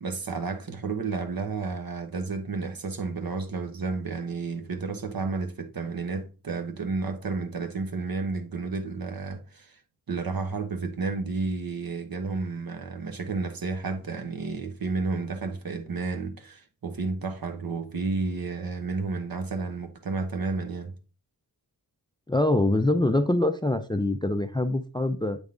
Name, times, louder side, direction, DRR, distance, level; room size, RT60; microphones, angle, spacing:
voice 1, 0.0-9.8 10.1-20.9, right 4 dB, 60° right, 0.9 m, -31 dB
voice 2, 22.3-25.4, left 1 dB, 10° left, 0.3 m, -24 dB
8.1 x 3.6 x 3.7 m
wide cardioid pair, 105°, 40 cm